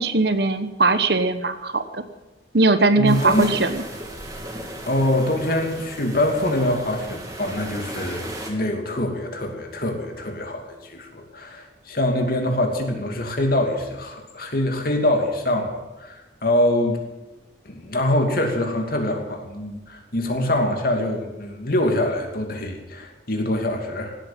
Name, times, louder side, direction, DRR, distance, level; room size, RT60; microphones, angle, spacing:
voice 1, 0.0-2.0 2.5-3.7, right 3 dB, 60° right, 10 dB, 1.1 m, -20 dB
voice 2, 3.0-3.5 4.8-17.0 17.6-24.2, left 1 dB, 50° left, 3 dB, 2.7 m, -24 dB
sound 1, 3.1-8.5, right 1 dB, 20° right, 2.7 m, -36 dB
17.5 x 8.9 x 8.7 m, 1.0 s
head